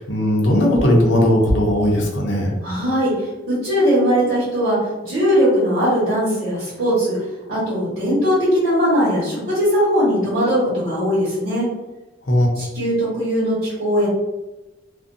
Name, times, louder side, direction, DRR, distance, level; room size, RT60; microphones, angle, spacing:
voice 1, 0.0-2.5 12.3-12.5, left 1 dB, 65° left, -1 dB, 0.6 m, -17 dB
voice 2, 2.6-7.2 7.5-11.7 12.5-14.1, equal, 75° right, -11 dB, 1.1 m, -19 dB
2.5 x 2.2 x 2.5 m, 1.1 s
head